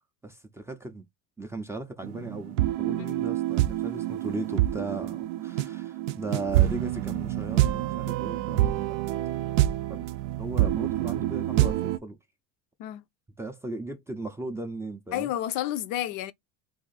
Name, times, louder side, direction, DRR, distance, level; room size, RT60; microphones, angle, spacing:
voice 1, 0.2-1.0 1.4-9.0 9.9-10.1 10.4-12.2 13.4-15.3, right 2 dB, 10° right, 0.4 m, -37 dB
sound 1, 2.0-12.0, right 14 dB, 85° right, 0.5 m, -27 dB
voice 2, 15.1-16.3, left 13 dB, 60° left, 0.5 m, -30 dB
2.7 x 2.5 x 3.9 m
supercardioid pair, 135°, 35 cm